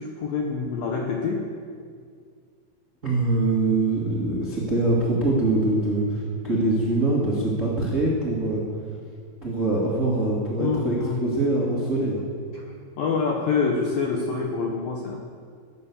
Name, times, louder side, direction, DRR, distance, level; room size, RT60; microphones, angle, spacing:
voice 1, 0.0-1.4 10.6-11.2 12.5-12.6 13.0-15.2, left 5 dB, 75° left, 1 dB, 2.2 m, -26 dB
voice 2, 3.0-8.6 9.4-12.2, right 2 dB, 35° right, -5 dB, 1.2 m, -23 dB
17.5 x 9.9 x 7.1 m, 2.1 s
omnidirectional pair, 5.6 m